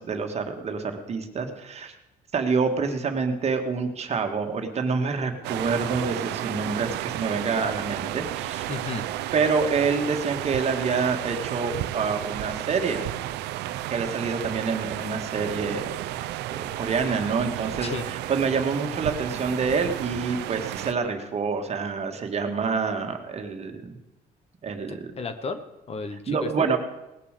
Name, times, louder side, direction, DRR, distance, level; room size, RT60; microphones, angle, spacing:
voice 1, 0.0-1.9 2.3-8.7 9.3-13.1 13.9-16.1 16.5-24.0 24.6-25.1 26.3-26.8, right 5 dB, 40° right, 5 dB, 1.7 m, -27 dB
sound 1, 5.4-20.9, right 14 dB, 85° right, 0.6 m, -32 dB
voice 2, 8.7-9.0 17.8-18.0 24.9-25.6 25.9-26.7, left 4 dB, 35° left, 10 dB, 1.1 m, -33 dB
19.0 x 6.9 x 6.6 m, 0.99 s
cardioid pair, 110°, 17 cm